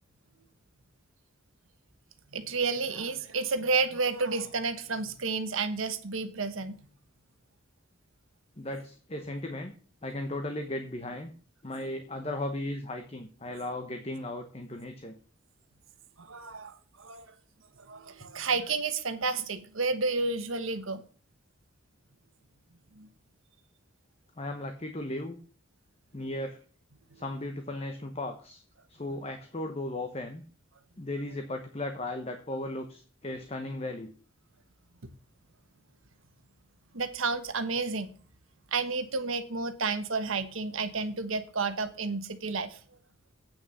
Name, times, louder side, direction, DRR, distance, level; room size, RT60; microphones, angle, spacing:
voice 1, 2.3-6.8 16.2-17.3 17.8-21.0 22.9-23.1 27.1-27.2 36.9-38.1 38.7-42.8, right 4 dB, 85° right, 10 dB, 1.2 m, -31 dB
voice 2, 8.6-9.7 10.0-11.3 11.6-15.2 24.4-25.4 26.1-26.6 27.1-28.6 28.9-30.4 31.0-34.1, left 1 dB, 30° left, 6 dB, 0.9 m, -36 dB
8.7 x 6.2 x 6.9 m, 0.40 s
head